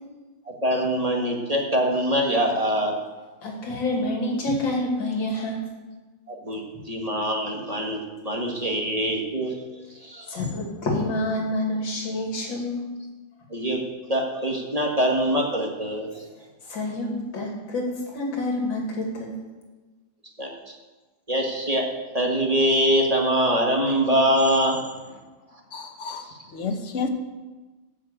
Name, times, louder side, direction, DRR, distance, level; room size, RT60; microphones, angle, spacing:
voice 1, 0.5-2.9 6.3-8.0 8.2-10.4 13.5-13.8 14.1-16.3 20.4-20.8 21.3-21.8 22.1-24.9, equal, 20° right, 0 dB, 1.6 m, -24 dB
voice 2, 3.4-5.7 10.3-12.8 16.6-19.4, left 1 dB, 75° left, 0 dB, 3.2 m, -27 dB
voice 3, 25.7-27.1, left 4 dB, 45° left, 6 dB, 1.2 m, -31 dB
13.0 x 6.4 x 8.2 m, 1.2 s
omnidirectional pair, 2.1 m